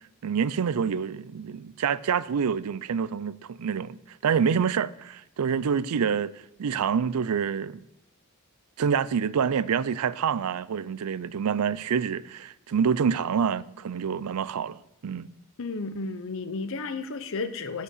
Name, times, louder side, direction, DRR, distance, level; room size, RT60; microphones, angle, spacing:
voice 1, 0.2-6.3 6.6-7.8 8.8-15.3, right 7 dB, 80° right, 0.4 m, -27 dB
voice 2, 15.6-17.8, left 3 dB, 65° left, 0.8 m, -33 dB
8.2 x 8.2 x 6.3 m
head